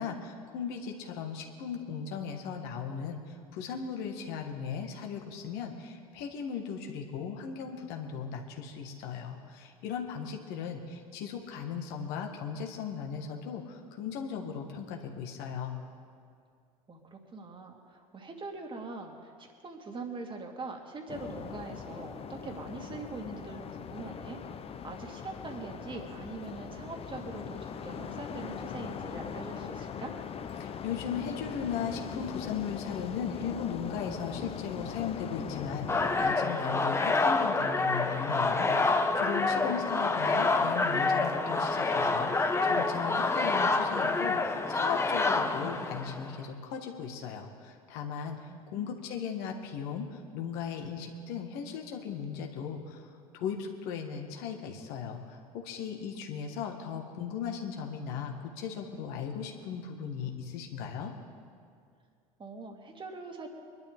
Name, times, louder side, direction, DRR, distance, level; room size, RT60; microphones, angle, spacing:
voice 1, 0.0-15.8 30.6-48.4 48.7-53.1 53.3-61.1, left 7 dB, 55° left, 2 dB, 1.9 m, -37 dB
voice 2, 16.9-24.4 24.8-30.1 48.5-48.9 56.5-57.0 62.4-63.5, right 3 dB, 25° right, 2 dB, 2.7 m, -43 dB
sound 1, 21.1-36.4, left 7 dB, 30° left, 0.9 m, -41 dB
sound 2, 35.9-46.3, left 3 dB, 15° left, 1.2 m, -27 dB
24.5 x 12.0 x 3.7 m, 2.3 s
figure-of-eight pair, 70°, 19 cm